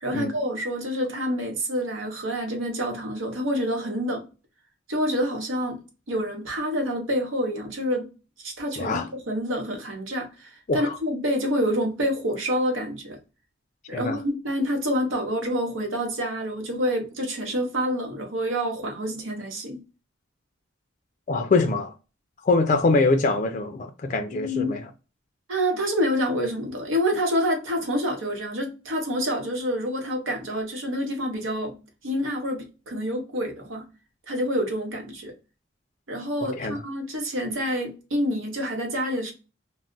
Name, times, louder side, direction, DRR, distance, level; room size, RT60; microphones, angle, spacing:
voice 1, 0.0-4.3 4.9-5.8 6.1-8.1 8.4-13.2 13.9-19.8 24.3-24.7 25.5-31.8 32.0-33.9 34.3-35.3 36.1-39.3, equal, 90° right, 0.9 m, -27 dB
voice 2, 21.3-21.9 22.4-24.9 36.6-36.8, left 3 dB, 40° left, 0.3 m, -23 dB
2.3 x 2.0 x 3.7 m
head